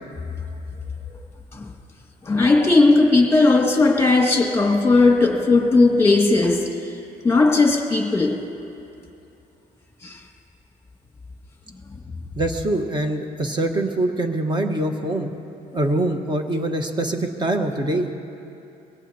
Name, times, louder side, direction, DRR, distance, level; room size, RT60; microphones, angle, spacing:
voice 1, 2.2-6.9 7.2-8.4 10.0-10.2, left 3 dB, 15° left, 2.0 m, -17 dB
voice 2, 12.4-15.3 15.7-18.1, right 1 dB, 25° right, 1.4 m, -24 dB
22.5 x 17.5 x 2.9 m
cardioid pair, 110°, 17 cm